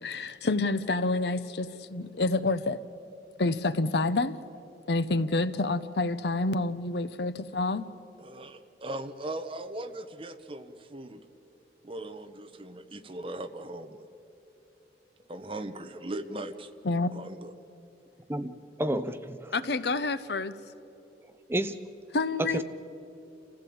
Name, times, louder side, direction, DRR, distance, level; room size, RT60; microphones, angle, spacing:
voice 1, 0.0-2.8 3.4-4.4 4.9-7.8 16.8-17.1 19.5-20.5 22.1-22.6, left 3 dB, 65° left, 14 dB, 0.8 m, -28 dB
voice 2, 8.2-11.2 11.8-14.0 15.3-16.7 17.1-17.5, right 1 dB, 30° right, 8 dB, 1.0 m, -39 dB
voice 3, 18.3-19.5 21.5-21.8 22.4-22.6, right 1 dB, 15° right, 10 dB, 0.6 m, -30 dB
27.5 x 15.5 x 8.7 m, 3.0 s
head